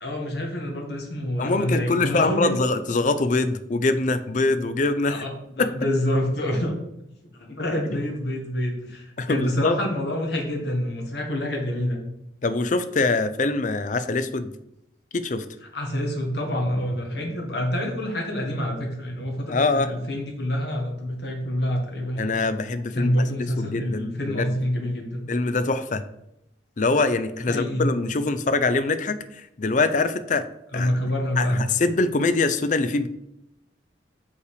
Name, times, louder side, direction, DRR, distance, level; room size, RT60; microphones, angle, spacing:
voice 1, 0.0-2.6 5.1-6.7 7.3-12.0 15.7-22.2 22.9-25.2 27.5-27.9 30.7-31.6, left 1 dB, 60° left, 1 dB, 1.8 m, -27 dB
voice 2, 1.4-5.2 5.6-5.7 7.9-8.0 9.2-9.8 12.4-14.5 15.1-15.4 19.5-19.9 22.2-23.2 23.6-24.5 25.3-26.0 26.8-30.4 30.7-30.9 31.4-33.1, left 3 dB, 40° left, 11 dB, 0.5 m, -23 dB
6.5 x 5.5 x 5.0 m, 0.82 s
head